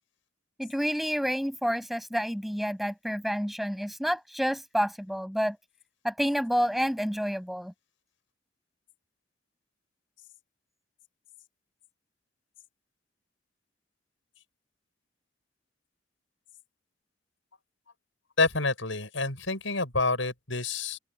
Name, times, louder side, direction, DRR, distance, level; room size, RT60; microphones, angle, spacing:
voice 1, 0.6-5.6 6.0-7.7, equal, ahead, 7.3 m, -29 dB
voice 2, 18.4-21.0, left 3 dB, 85° left, 6.9 m, -28 dB
open air
head